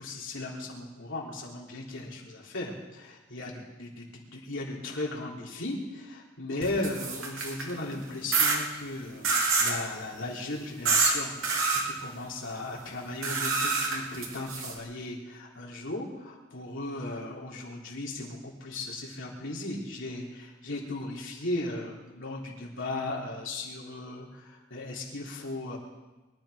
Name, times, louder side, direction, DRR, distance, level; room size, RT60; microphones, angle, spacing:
voice 1, 0.0-25.8, left 2 dB, 65° left, -3 dB, 3.7 m, -37 dB
sound 1, 6.6-7.7 8.3-8.6 9.2-9.8 10.9-11.1 11.4-11.8 13.2-14.7, right 4 dB, 80° right, 2.9 m, -26 dB
23.5 x 11.0 x 5.2 m, 1.2 s
head